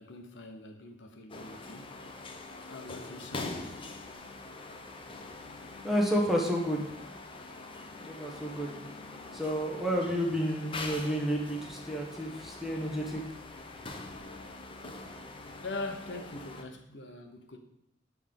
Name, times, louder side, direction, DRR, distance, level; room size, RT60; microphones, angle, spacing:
voice 1, 0.0-1.9 2.7-3.6 15.6-17.6, left 2 dB, 80° left, 4 dB, 0.9 m, -42 dB
sound 1, 1.3-16.6, left 3 dB, 30° left, 0.6 m, -44 dB
voice 2, 5.8-6.9 8.0-8.7 9.3-13.2, equal, ahead, -2 dB, 1.1 m, -30 dB
7.5 x 3.5 x 5.2 m, 0.79 s
head